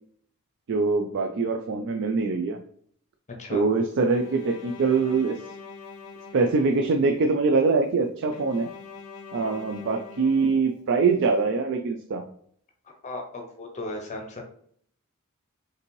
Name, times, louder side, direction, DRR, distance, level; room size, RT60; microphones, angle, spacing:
voice 1, 0.7-2.6 3.5-5.4 6.3-8.7 9.3-12.3, right 4 dB, 55° right, 5 dB, 0.4 m, -23 dB
Bowed string instrument, 4.1-7.3 8.3-11.2, left 5 dB, 70° left, 0.5 m, -44 dB
voice 2, 13.0-14.4, left 2 dB, 35° left, 2 dB, 0.6 m, -36 dB
5.3 x 2.7 x 3.0 m, 0.62 s
head